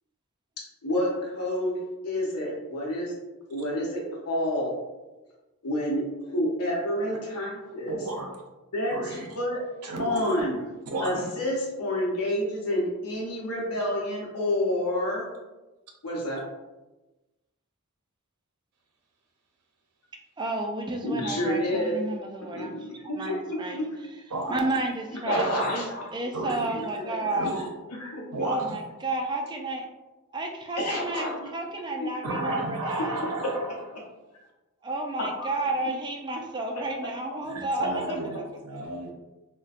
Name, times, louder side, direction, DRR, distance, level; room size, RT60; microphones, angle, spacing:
voice 1, 0.6-3.1 3.5-4.7 5.6-7.9 8.7-9.6 10.0-10.6 11.0-15.3 16.0-16.4 21.0-21.9 22.5-23.9 25.3-26.2 26.7-27.2 27.9-28.4 30.8-31.6 32.0-32.4 33.2-33.5 35.2-35.5, left 1 dB, 80° left, -3 dB, 0.7 m, -29 dB
voice 2, 7.9-8.4 8.9-9.3 9.8-10.3 10.9-11.3 24.3-24.6 25.3-25.7 26.3-26.7 27.3-27.6 28.3-28.8 32.2-33.8 37.5-38.3 38.6-39.1, right 2 dB, 85° right, 1 dB, 0.6 m, -32 dB
voice 3, 20.4-22.9 23.2-23.8 24.5-25.9 26.1-27.6 28.4-29.9 30.3-33.1 34.8-38.2 38.7-38.8, right 2 dB, 20° right, 2 dB, 0.3 m, -31 dB
4.0 x 2.1 x 2.4 m, 1.1 s
head